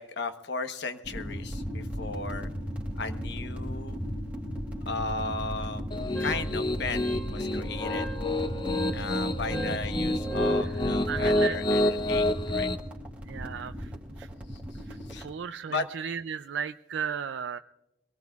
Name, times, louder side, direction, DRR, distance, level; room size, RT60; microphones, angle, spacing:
voice 1, 0.0-2.5 2.9-4.0 4.9-5.9 6.2-8.1 8.9-12.7 14.5-15.3 15.7-15.9, left 3 dB, 65° left, 9 dB, 1.1 m, -36 dB
sound 1, 1.0-15.3, equal, 10° right, 2.7 m, -36 dB
Piano, 5.9-12.8, left 1 dB, 25° left, 0.7 m, -28 dB
Wind instrument woodwind instrument, 6.1-10.7, right 4 dB, 10° left, 1.9 m, -42 dB
voice 2, 11.1-11.9 13.2-13.9 14.2-14.3 14.9-17.6, right 7 dB, 70° right, 9 dB, 0.4 m, -35 dB
23.5 x 18.5 x 2.4 m, 0.92 s
head